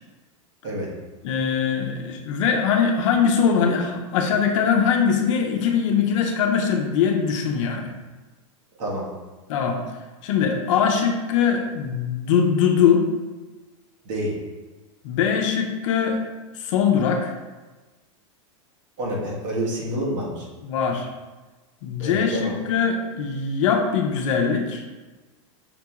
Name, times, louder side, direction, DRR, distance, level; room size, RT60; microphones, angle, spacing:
voice 1, 1.2-7.9 9.5-9.8 10.2-13.1 15.0-16.2 16.6-17.3 20.6-21.1 21.8-24.8, left 7 dB, 70° left, 3 dB, 0.7 m, -21 dB
voice 2, 19.0-20.5 22.0-22.6, equal, 65° right, -3 dB, 1.4 m, -28 dB
5.9 x 2.3 x 2.9 m, 1.2 s
hypercardioid pair, 115°, 17 cm